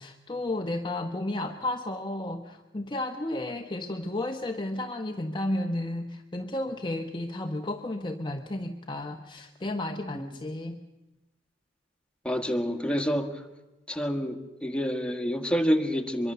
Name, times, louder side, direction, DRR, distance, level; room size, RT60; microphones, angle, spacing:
voice 1, 0.0-10.8, left 1 dB, 25° left, 4 dB, 1.0 m, -33 dB
voice 2, 12.3-13.3 13.9-16.3, equal, 5° left, 6 dB, 1.7 m, -28 dB
24.0 x 23.0 x 6.8 m, 1.1 s
head